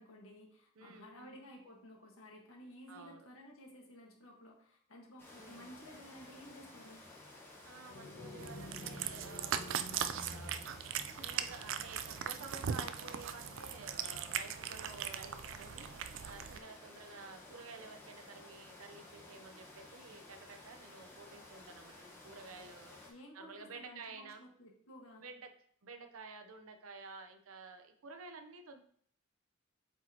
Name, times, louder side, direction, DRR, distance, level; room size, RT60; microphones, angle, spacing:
voice 1, 0.0-7.0 23.1-25.2, left 1 dB, 75° left, 1 dB, 1.5 m, -54 dB
voice 2, 0.8-1.4 2.9-3.3 5.3-5.8 7.6-9.8 10.2-10.7 11.1-15.9 16.2-23.0 23.3-24.4 25.2-25.5 25.8-28.8, right 4 dB, 80° right, 7 dB, 0.8 m, -51 dB
sound 1, 5.2-23.1, left 2 dB, 10° left, 1.1 m, -55 dB
sound 2, 7.9-11.5, left 1 dB, 35° left, 0.6 m, -50 dB
Cat, 8.4-16.6, right 8 dB, 60° right, 0.4 m, -40 dB
8.1 x 4.7 x 2.9 m, 0.62 s
head